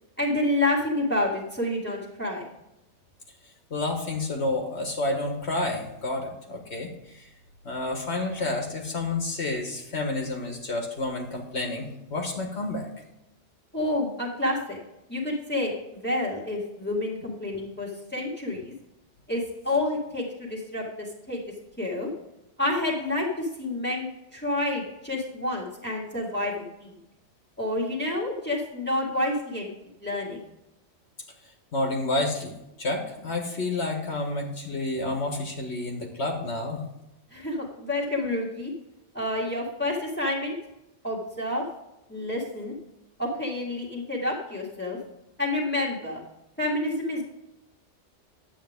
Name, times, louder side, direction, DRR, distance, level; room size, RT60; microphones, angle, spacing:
voice 1, 0.2-2.5 13.7-14.8 15.1-18.7 19.3-21.4 21.8-22.1 22.6-27.0 27.6-29.7 30.0-30.4 37.3-38.7 39.1-40.6 41.0-41.7 42.1-42.7 43.2-45.0 45.4-46.2 46.6-47.2, left 1 dB, 10° left, -3 dB, 2.0 m, -29 dB
voice 2, 3.7-7.3 7.6-12.9 31.7-36.8, left 2 dB, 65° left, 2 dB, 1.6 m, -30 dB
10.5 x 8.3 x 3.6 m, 0.89 s
omnidirectional pair, 1.2 m